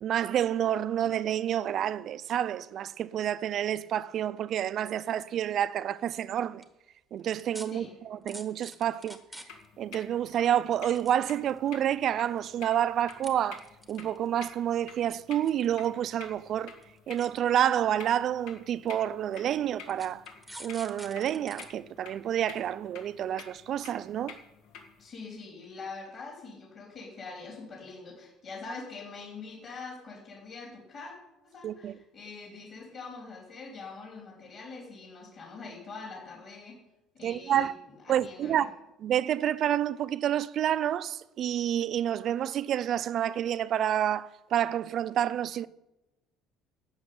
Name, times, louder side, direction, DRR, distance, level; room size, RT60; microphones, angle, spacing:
voice 1, 0.0-6.6 7.1-9.2 9.8-16.7 17.1-20.2 20.6-24.4 31.6-32.0 37.2-37.7 38.1-38.7 39.0-45.7, right 10 dB, 40° right, 0.4 m, -29 dB
sound 1, 6.4-6.6 7.3-7.7 8.3-9.7 9.9-10.0 10.7-11.7 12.2-12.6 13.1-13.3 13.6-14.3 15.1-15.9 16.2-16.3 16.7-16.8 17.2-17.3 18.1-18.2 18.9-19.0 19.9-21.7 22.1-22.2, right 1 dB, ahead, 1.0 m, -46 dB
sound 2, 9.5-25.1, left 6 dB, 75° left, 2.3 m, -50 dB
voice 2, 25.0-31.1 31.4-36.8 37.1-37.7 38.0-38.7, left 4 dB, 35° left, 3.5 m, -44 dB
12.0 x 6.4 x 8.8 m
cardioid pair, 170°, 0 cm